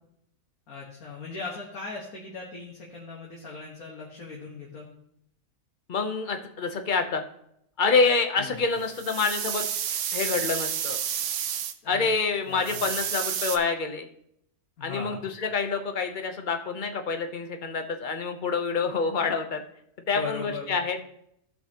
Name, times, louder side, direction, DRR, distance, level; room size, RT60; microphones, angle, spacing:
voice 1, 0.7-4.9 8.4-8.6 11.8-12.1 12.5-12.8 14.8-15.2 20.2-20.8, left 4 dB, 85° left, -3 dB, 1.9 m, -38 dB
voice 2, 5.9-7.2 7.8-9.6 9.9-11.0 11.9-14.1 14.8-19.6 20.1-21.0, left 4 dB, 45° left, 6 dB, 0.8 m, -27 dB
sound 1, 8.8-11.7 12.6-13.6, right 9 dB, 65° right, 0.9 m, -30 dB
15.5 x 5.6 x 2.9 m, 0.75 s
omnidirectional pair, 1.5 m